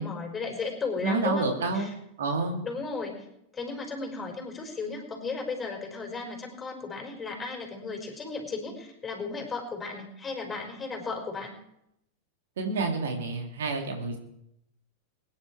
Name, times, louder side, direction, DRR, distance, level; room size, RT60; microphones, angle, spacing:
voice 1, 0.0-1.9 2.6-3.3 3.5-11.5, left 4 dB, 15° left, 1 dB, 5.2 m, -35 dB
voice 2, 1.0-1.9 2.2-2.6 12.6-14.2, right 3 dB, 60° right, 2 dB, 2.9 m, -28 dB
23.0 x 10.5 x 4.8 m, 0.80 s
figure-of-eight pair, 90°, 0 cm